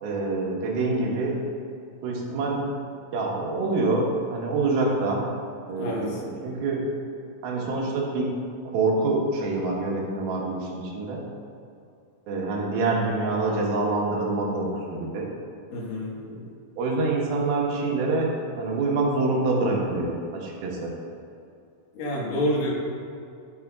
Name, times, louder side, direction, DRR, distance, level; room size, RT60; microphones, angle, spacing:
voice 1, 0.0-1.3 2.0-2.6 3.1-5.2 5.7-6.8 7.4-8.3 8.7-11.2 12.3-15.3 16.3-16.4 16.8-18.3 18.6-20.1 20.4-20.9, right 3 dB, 80° right, -2 dB, 3.1 m, -26 dB
voice 2, 5.8-6.2 15.7-16.2 21.9-22.7, left 1 dB, 70° left, -4 dB, 3.2 m, -27 dB
13.0 x 7.3 x 2.4 m, 2.6 s
omnidirectional pair, 4.3 m